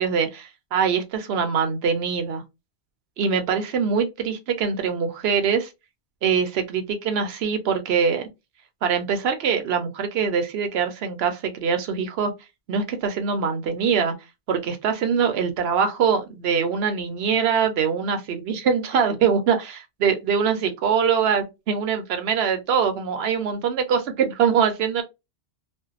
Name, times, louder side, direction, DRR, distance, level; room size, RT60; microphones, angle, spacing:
voice 1, 0.0-2.4 3.2-5.7 6.2-8.3 8.8-12.3 12.7-14.1 14.5-25.0, right 6 dB, 65° right, 0.7 m, -23 dB
2.6 x 2.2 x 2.3 m
omnidirectional pair, 1.2 m